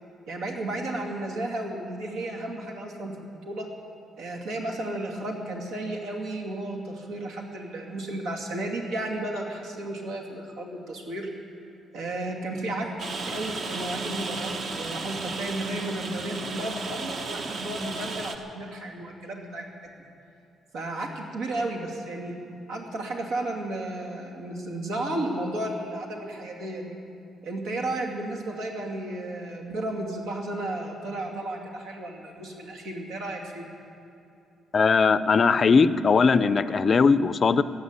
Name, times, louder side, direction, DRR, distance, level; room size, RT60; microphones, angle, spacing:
voice 1, 0.3-3.7 4.2-11.3 11.9-12.9 13.2-19.7 20.7-22.3 22.7-27.0 27.4-33.7, right 1 dB, 90° right, 0 dB, 2.5 m, -33 dB
Rain, 13.0-18.4, right 3 dB, 50° right, 1.1 m, -34 dB
voice 2, 34.7-37.6, left 5 dB, 35° left, 14 dB, 0.4 m, -19 dB
16.5 x 9.9 x 8.2 m, 2.7 s
cardioid pair, 135°, 0 cm